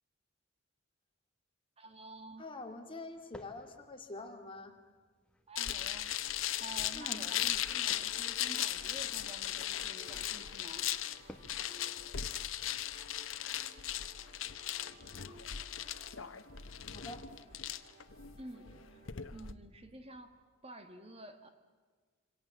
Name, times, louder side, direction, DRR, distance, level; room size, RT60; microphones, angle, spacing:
voice 1, 1.8-2.5 5.5-6.2 6.6-10.9 18.4-19.0 19.3-21.5, right 1 dB, 30° right, 8 dB, 1.7 m, -50 dB
sound 1, 1.9-14.3, left 1 dB, 5° left, 1.6 m, -61 dB
voice 2, 2.4-4.7 6.9-7.2 16.9-17.2, left 2 dB, 25° left, 4 dB, 2.6 m, -45 dB
sound 2, 5.6-19.5, left 11 dB, 80° left, 1.1 m, -37 dB
sound 3, 6.6-19.1, equal, 50° right, 5.6 m, -60 dB
27.0 x 25.5 x 7.5 m, 1.5 s
head